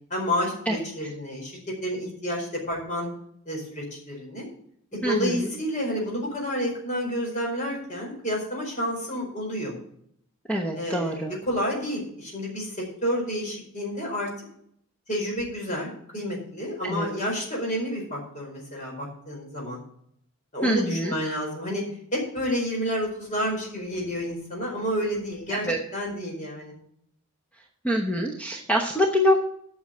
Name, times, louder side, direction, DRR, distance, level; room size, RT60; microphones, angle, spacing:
voice 1, 0.1-3.1 3.5-4.4 4.9-9.7 10.8-14.3 15.1-19.8 20.5-21.8 22.1-25.7 25.9-26.7, equal, 35° left, -1 dB, 4.7 m, -30 dB
voice 2, 5.0-5.5 10.5-11.3 16.8-17.1 20.6-21.1 25.5-25.8 27.8-29.5, equal, 5° left, 0 dB, 1.0 m, -25 dB
8.8 x 6.4 x 7.8 m, 0.68 s
head